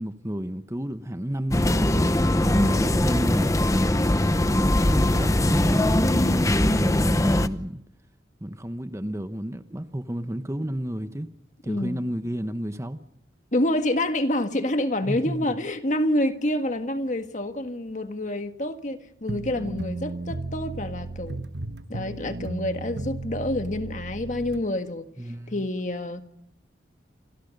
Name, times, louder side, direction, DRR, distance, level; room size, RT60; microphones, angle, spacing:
voice 1, 0.0-1.9 2.4-3.6 4.8-7.8 8.4-11.3 11.6-13.0 15.0-15.5 25.2-25.6, right 1 dB, 15° right, 1.0 m, -31 dB
sound 1, 1.5-7.5, left 1 dB, 20° left, 0.8 m, -21 dB
voice 2, 2.6-3.0 11.7-12.1 13.5-21.4 21.9-25.1 25.5-26.2, left 1 dB, 45° left, 1.7 m, -27 dB
sound 2, 19.3-24.6, right 2 dB, 70° right, 1.2 m, -34 dB
29.0 x 25.5 x 5.4 m
head